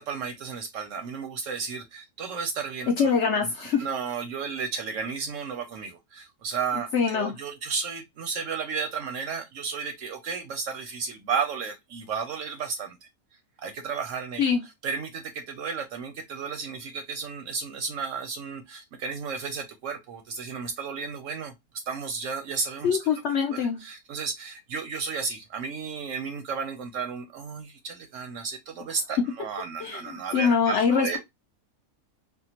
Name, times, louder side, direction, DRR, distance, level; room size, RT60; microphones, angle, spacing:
voice 1, 0.0-3.5 3.8-13.1 13.6-14.4 14.8-21.5 21.9-23.0 23.5-31.2, right 5 dB, 65° right, 0.8 m, -33 dB
voice 2, 3.0-3.8 6.9-7.3 14.4-14.6 22.8-23.8 29.8-31.2, left 6 dB, 70° left, 0.7 m, -24 dB
3.5 x 2.2 x 2.8 m
omnidirectional pair, 1.7 m